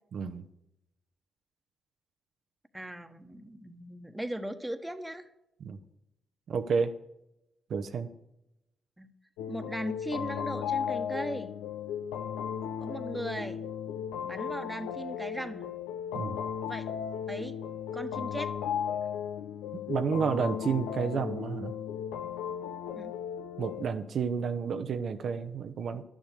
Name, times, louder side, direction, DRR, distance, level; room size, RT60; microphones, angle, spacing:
voice 1, 0.1-0.4 5.6-5.8 6.5-6.9 7.7-8.1 16.1-16.4 19.7-21.7 23.6-26.0, right 6 dB, 65° right, 8 dB, 0.7 m, -31 dB
voice 2, 2.7-5.3 9.0-9.1 9.5-11.6 12.8-13.6 14.2-15.7 16.7-16.9 17.3-17.6 17.9-18.5 22.9-23.1, right 1 dB, 10° right, 8 dB, 1.2 m, -38 dB
sound 1, 9.4-23.9, left 8 dB, 85° left, 0.7 m, -35 dB
11.0 x 7.3 x 6.7 m, 0.86 s
hypercardioid pair, 45°, 0 cm